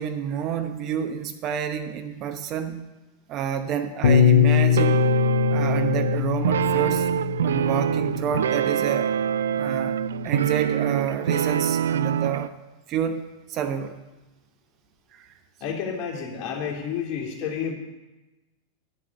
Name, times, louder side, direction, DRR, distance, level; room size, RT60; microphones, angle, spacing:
voice 1, 0.0-2.8 3.3-5.0 5.5-7.1 7.4-9.1 9.6-9.9 10.2-12.5 12.9-13.2 13.5-13.9 15.1-15.3, right 8 dB, 35° right, 7 dB, 0.9 m, -29 dB
Bass guitar, 4.0-8.5 9.3-10.3, left 8 dB, 65° left, 0.9 m, -22 dB
sound 1, 4.8-12.5, right 9 dB, 65° right, 0.3 m, -25 dB
voice 2, 15.6-17.7, left 7 dB, 35° left, -1 dB, 2.8 m, -30 dB
11.0 x 8.3 x 6.9 m, 1.1 s
figure-of-eight pair, 90°, 0 cm